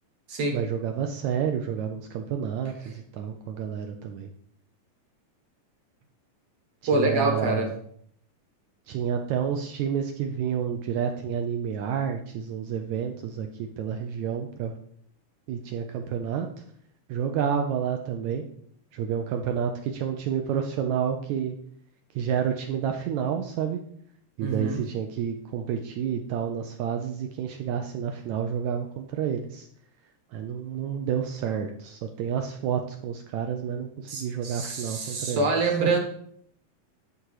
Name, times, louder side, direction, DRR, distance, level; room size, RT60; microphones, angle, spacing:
voice 1, 0.5-4.3 6.9-7.7 8.9-14.7 15.5-16.5 17.1-18.4 18.9-21.6 22.1-23.8 24.4-29.7 30.3-35.5 35.8-35.9, right 8 dB, 80° right, 4 dB, 1.6 m, -29 dB
voice 2, 6.9-7.7 24.4-24.8 34.1-36.0, right 3 dB, 60° right, 2 dB, 2.0 m, -25 dB
11.0 x 3.8 x 4.8 m, 0.64 s
omnidirectional pair, 3.9 m